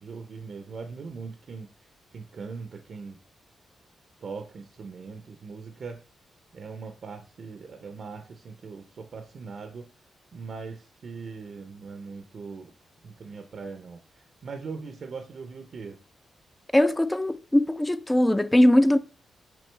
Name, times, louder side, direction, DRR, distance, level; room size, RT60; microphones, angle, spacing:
voice 1, 0.0-1.7 2.1-3.2 4.2-6.0 6.5-9.9 10.3-12.7 13.0-16.0, right 4 dB, 60° right, 0.7 m, -40 dB
voice 2, 16.7-19.0, left 1 dB, 10° left, 0.4 m, -20 dB
6.2 x 5.1 x 3.3 m
cardioid pair, 80°, 0 cm